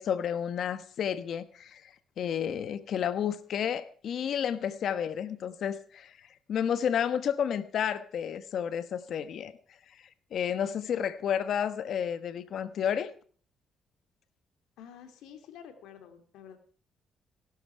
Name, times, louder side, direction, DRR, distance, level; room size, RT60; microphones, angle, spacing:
voice 1, 0.0-6.1 6.5-9.5 10.3-13.1, left 8 dB, 65° left, 12 dB, 1.2 m, -31 dB
voice 2, 14.8-16.6, left 8 dB, 90° left, 7 dB, 2.8 m, -49 dB
17.0 x 12.5 x 4.6 m, 0.43 s
cardioid pair, 90°, 0 cm